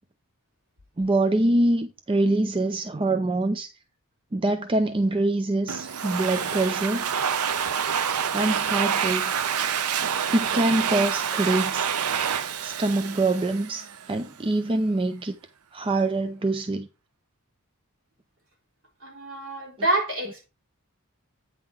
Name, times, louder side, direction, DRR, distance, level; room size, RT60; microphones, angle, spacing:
voice 1, 1.0-3.7 4.3-7.1 8.3-9.3 10.3-11.9 12.6-15.3 15.7-16.9, right 2 dB, 25° right, 0.5 m, -24 dB
Domestic sounds home sounds, 5.7-14.1, right 7 dB, 80° right, 0.6 m, -27 dB
voice 2, 19.0-20.5, right 1 dB, 60° right, 3.8 m, -27 dB
9.0 x 3.8 x 5.9 m
head